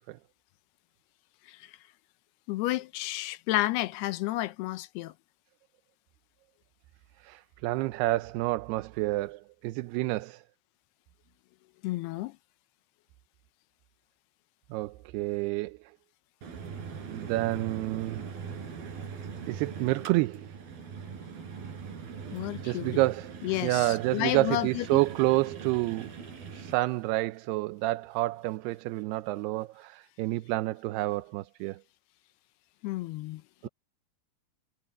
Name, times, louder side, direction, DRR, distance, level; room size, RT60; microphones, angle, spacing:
voice 1, 2.5-5.1 11.8-12.4 22.3-23.0 23.4-25.0 32.8-33.7, left 17 dB, 80° left, 2.8 m, -31 dB
voice 2, 7.2-10.4 14.7-15.9 17.0-18.2 19.5-20.6 22.6-26.1 26.5-31.8 33.6-33.7, right 19 dB, 85° right, 2.7 m, -29 dB
sound 1, 16.4-26.7, right 6 dB, 65° right, 5.4 m, -41 dB
omnidirectional pair, 4.6 m